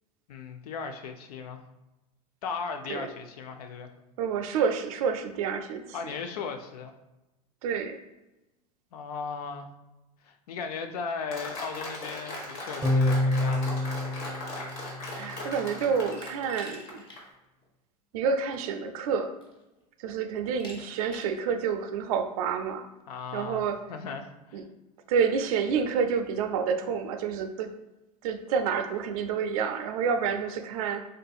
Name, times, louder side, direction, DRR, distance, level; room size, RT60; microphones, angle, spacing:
voice 1, 0.3-1.6 2.4-3.9 5.9-6.9 8.9-9.7 10.2-13.8 23.1-23.6 23.9-24.6, left 5 dB, 75° left, 6 dB, 0.5 m, -37 dB
voice 2, 4.2-5.8 7.6-8.0 15.1-17.0 18.1-19.3 20.0-22.8 23.3-23.8 24.5-24.6 25.1-27.7 28.2-31.0, right 6 dB, 70° right, 7 dB, 0.4 m, -28 dB
Applause, 11.3-17.2, left 1 dB, 50° left, 1.2 m, -39 dB
sound 1, 12.8-15.4, left 1 dB, 15° right, 0.6 m, -27 dB
Glass, 16.1-17.2 17.6-17.7 18.8-18.9 19.4-19.8 20.6-21.4, left 1 dB, 25° left, 1.0 m, -47 dB
3.8 x 2.6 x 2.3 m, 1.0 s
hypercardioid pair, 95°, 19 cm